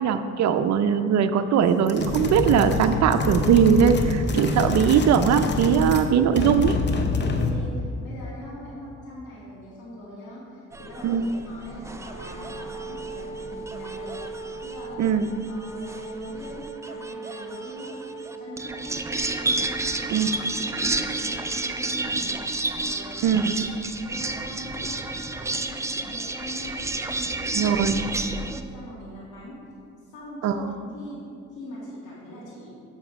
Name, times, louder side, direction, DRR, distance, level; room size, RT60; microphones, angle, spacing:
voice 1, 0.0-6.8 11.0-11.3 15.0-15.3 20.1-20.3 23.2-23.5 27.5-28.0 30.4-30.5, right 7 dB, 65° right, 8 dB, 0.5 m, -20 dB
sound 1, 1.9-6.1 6.3-7.7, left 3 dB, 35° left, 0.8 m, -26 dB
voice 2, 7.2-14.2 14.6-15.0 15.5-17.9 18.3-19.0 19.4-22.4 22.7-23.4 24.0-25.0 25.3-26.8 27.1-27.8 28.1-29.6 30.0-32.7, left 1 dB, 85° left, -8 dB, 2.1 m, -42 dB
sound 2, 10.7-28.6, right 2 dB, 10° right, 0.4 m, -31 dB
Wind instrument woodwind instrument, 12.0-22.0, right 4 dB, 35° right, 1.4 m, -40 dB
7.2 x 7.0 x 4.7 m, 2.5 s
cardioid pair, 90°, 30 cm